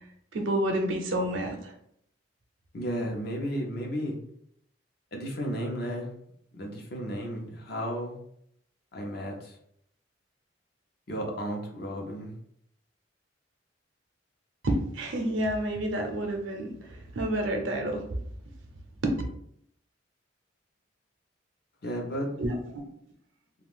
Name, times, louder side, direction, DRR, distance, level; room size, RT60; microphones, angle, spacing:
voice 1, 0.3-1.7 14.6-18.2 19.0-19.2 22.4-22.8, right 1 dB, 85° right, 3 dB, 0.6 m, -29 dB
voice 2, 2.7-4.2 5.1-6.1 6.5-8.2 8.9-9.6 11.1-12.3 21.8-22.4, equal, 55° left, 0 dB, 0.7 m, -33 dB
2.4 x 2.3 x 3.6 m, 0.71 s
head